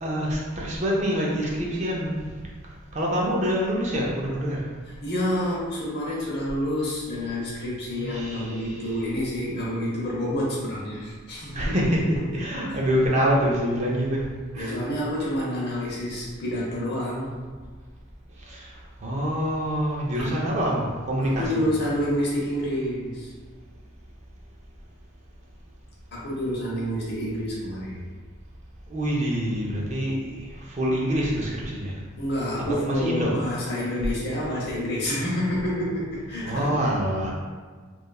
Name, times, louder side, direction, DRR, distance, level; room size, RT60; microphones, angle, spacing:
voice 1, 0.0-2.4 2.9-4.7 8.0-9.1 11.5-14.3 14.5-14.8 15.2-15.3 18.4-18.7 19.0-21.7 28.9-32.0 32.6-33.3 36.4-37.3, equal, 35° right, -3 dB, 0.4 m, -26 dB
voice 2, 4.9-11.9 12.7-12.8 14.5-17.4 20.2-20.5 21.2-23.3 26.1-28.1 32.2-36.7, equal, 50° left, -5 dB, 0.7 m, -28 dB
2.9 x 2.3 x 2.3 m, 1.5 s
head